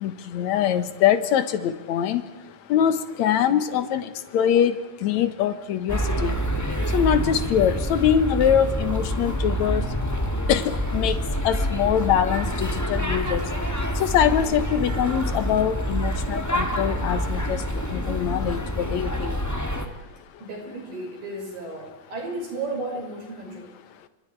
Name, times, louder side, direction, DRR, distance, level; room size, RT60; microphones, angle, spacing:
voice 1, 0.0-2.2 2.7-4.8 5.0-6.3 6.9-9.8 10.5-10.6 10.9-11.2 11.4-13.4 14.0-17.6 17.9-19.4, left 9 dB, 65° left, 11 dB, 2.4 m, -23 dB
sound 1, 5.9-19.9, equal, 10° left, 1.3 m, -27 dB
voice 2, 20.4-23.7, right 2 dB, 75° right, 1 dB, 7.5 m, -33 dB
29.0 x 25.5 x 4.7 m, 1.2 s
omnidirectional pair, 3.8 m